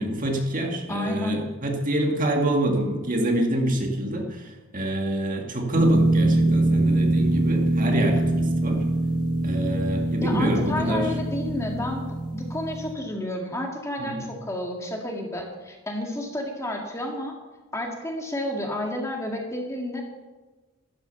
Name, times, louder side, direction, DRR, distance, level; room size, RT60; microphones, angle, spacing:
voice 1, 0.0-8.8 9.4-11.1 14.0-14.3, right 1 dB, 35° right, 2 dB, 2.0 m, -26 dB
voice 2, 0.9-1.4 10.2-17.4 17.7-20.0, left 1 dB, 15° left, 1 dB, 2.0 m, -31 dB
sound 1, 5.7-12.9, right 1 dB, 85° right, 1.2 m, -23 dB
12.5 x 12.5 x 7.0 m, 1.2 s
head